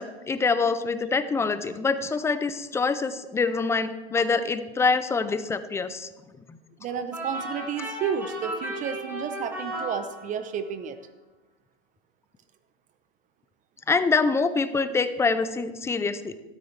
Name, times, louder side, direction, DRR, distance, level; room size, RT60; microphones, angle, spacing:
voice 1, 0.0-6.1 6.5-6.6 13.9-16.3, left 4 dB, 10° left, 12 dB, 0.5 m, -25 dB
voice 2, 6.8-11.0, right 7 dB, 25° right, 11 dB, 0.7 m, -31 dB
sound 1, 7.1-10.6, right 1 dB, 5° right, 4.0 m, -35 dB
13.0 x 13.0 x 3.3 m, 1.1 s
hypercardioid pair, 125°, 30 cm